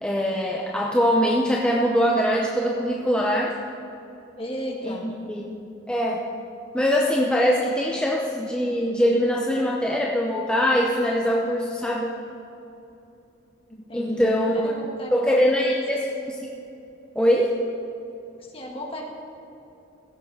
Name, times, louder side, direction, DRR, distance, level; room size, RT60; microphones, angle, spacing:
voice 1, 0.0-3.5 4.8-5.4 5.9-6.3 6.7-12.2 13.9-14.7 15.1-16.0 16.3-16.4 17.1-17.6, equal, 5° left, -3 dB, 0.7 m, -22 dB
voice 2, 4.4-5.1 13.8-15.8 18.4-19.1, equal, 30° left, 0 dB, 1.7 m, -35 dB
16.0 x 7.5 x 5.5 m, 2.9 s
head